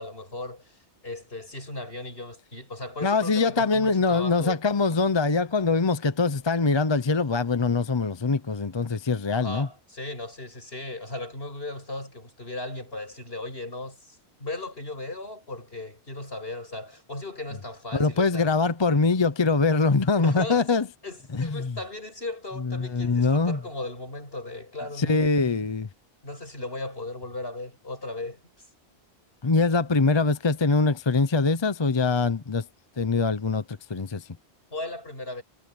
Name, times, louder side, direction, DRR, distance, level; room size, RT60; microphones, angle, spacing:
voice 1, 0.0-4.6 9.3-18.5 20.2-20.7 21.0-25.5 26.2-28.7 34.7-35.4, left 2 dB, 60° left, 8.3 m, -37 dB
voice 2, 3.0-9.7 17.9-20.9 21.3-21.8 22.6-23.6 25.0-25.9 29.4-32.6 33.0-34.3, left 4 dB, 30° left, 0.7 m, -23 dB
omnidirectional pair, 1.1 m